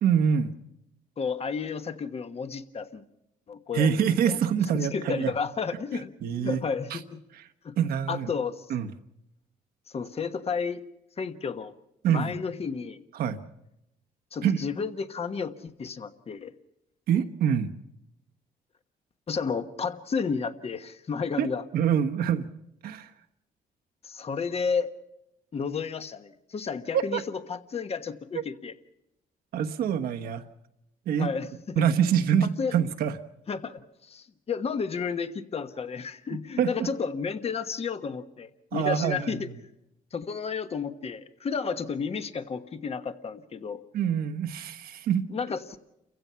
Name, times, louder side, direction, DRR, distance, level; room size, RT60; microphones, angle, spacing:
voice 1, 0.0-0.5 3.7-5.3 6.2-6.6 6.9-7.0 7.3-7.4 7.8-8.3 8.7-8.9 12.0-12.3 13.1-13.4 14.4-14.6 17.1-17.7 21.4-21.5 21.7-22.5 22.8-23.1 26.9-27.2 29.5-30.4 31.1-31.3 31.8-33.2 36.6-36.9 38.7-39.4 43.9-45.3, right 8 dB, 80° right, 6 dB, 1.3 m, -25 dB
voice 2, 1.2-3.0 3.5-4.4 4.7-6.1 6.4-7.2 7.6-7.7 8.1-8.7 9.9-10.9 11.2-11.7 12.1-13.0 14.3-16.5 19.3-21.6 24.0-24.9 25.5-28.7 31.2-31.8 32.6-32.7 33.5-39.5 40.1-43.8 45.3-45.6, left 5 dB, 40° left, 9 dB, 1.3 m, -32 dB
29.0 x 16.0 x 5.7 m, 0.87 s
cardioid pair, 95°, 15 cm